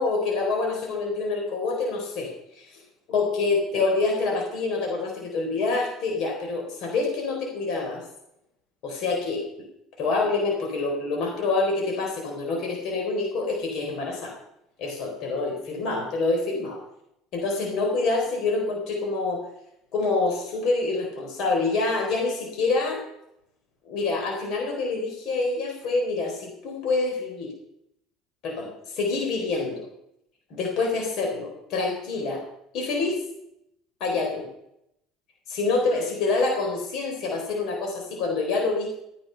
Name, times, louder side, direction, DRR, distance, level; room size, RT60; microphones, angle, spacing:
voice 1, 0.0-2.6 3.1-8.0 8.8-9.5 10.0-14.3 14.8-16.8 17.3-19.4 19.9-23.0 23.8-27.5 28.4-29.9 30.5-32.4 32.7-33.2 34.0-34.5 35.5-39.0, left 3 dB, 60° left, 0 dB, 4.2 m, -26 dB
14.0 x 10.0 x 5.8 m, 0.79 s
cardioid pair, 125°, 0 cm